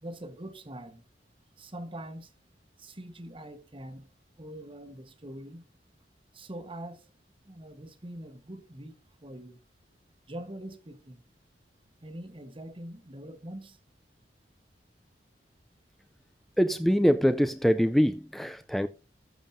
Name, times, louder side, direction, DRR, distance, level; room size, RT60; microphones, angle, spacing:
voice 1, 0.0-1.0 1.6-2.3 2.8-4.1 4.4-5.6 6.3-7.0 7.5-9.6 10.3-11.2 12.0-13.8, right 1 dB, 30° right, 1.2 m, -43 dB
voice 2, 16.6-18.9, equal, ahead, 0.4 m, -24 dB
14.5 x 7.2 x 2.7 m
head